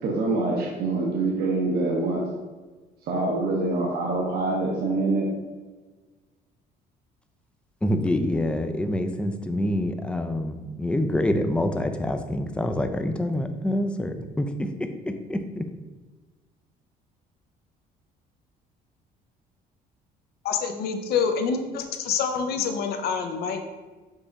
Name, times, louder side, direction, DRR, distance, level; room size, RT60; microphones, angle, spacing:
voice 1, 0.0-2.2 3.1-5.3, right 2 dB, 70° right, -3 dB, 0.8 m, -25 dB
voice 2, 7.8-15.6, left 1 dB, 5° left, 7 dB, 0.3 m, -26 dB
voice 3, 20.4-23.7, left 6 dB, 70° left, 5 dB, 0.6 m, -26 dB
5.4 x 2.4 x 3.9 m, 1.3 s
cardioid pair, 110°, 17 cm